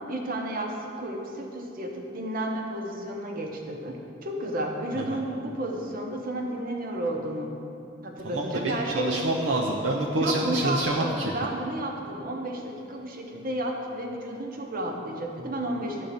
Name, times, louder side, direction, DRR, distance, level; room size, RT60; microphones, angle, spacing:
voice 1, 0.0-7.5 8.0-9.2 10.2-16.1, right 1 dB, 50° right, 1 dB, 1.0 m, -32 dB
voice 2, 8.2-11.3, right 2 dB, 70° right, -1 dB, 0.6 m, -27 dB
10.5 x 3.9 x 6.9 m, 2.7 s
head